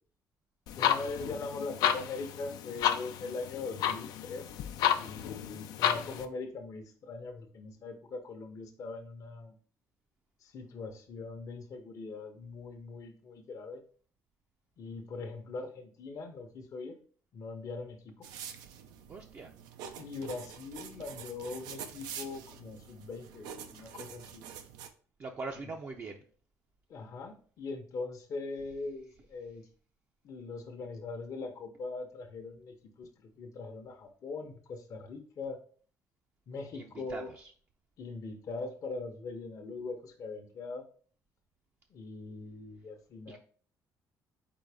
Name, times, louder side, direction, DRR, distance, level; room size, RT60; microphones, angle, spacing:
sound 1, 0.7-6.2, left 9 dB, 80° left, 0.4 m, -32 dB
voice 1, 0.7-4.5 5.0-9.5 10.4-13.8 14.8-16.9 17.3-18.3 20.0-24.4 26.9-29.6 30.2-35.6 36.5-37.3 38.0-40.8 41.9-43.4, left 3 dB, 55° left, 3 dB, 0.8 m, -41 dB
sound 2, 18.2-24.9, right 8 dB, 90° right, 0.5 m, -46 dB
voice 2, 19.1-19.5 25.2-26.3 36.7-37.5 43.3-43.4, right 3 dB, 40° right, 1 dB, 0.5 m, -42 dB
4.1 x 3.8 x 3.3 m, 0.44 s
cardioid pair, 90°, 7 cm